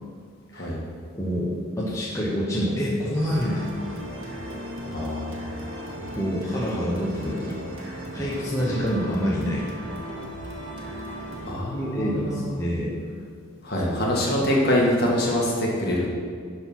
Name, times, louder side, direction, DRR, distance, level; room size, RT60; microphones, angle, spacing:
voice 1, 1.1-4.0 6.1-7.6 8.1-9.7 11.7-12.9 13.9-14.0, equal, 15° left, -6 dB, 1.0 m, -27 dB
sound 1, 3.1-11.5, equal, 65° right, 1.8 m, -36 dB
voice 2, 4.9-5.8 11.5-12.6 13.6-16.1, left 1 dB, 45° left, -3 dB, 1.9 m, -25 dB
11.0 x 4.6 x 6.0 m, 2.2 s
head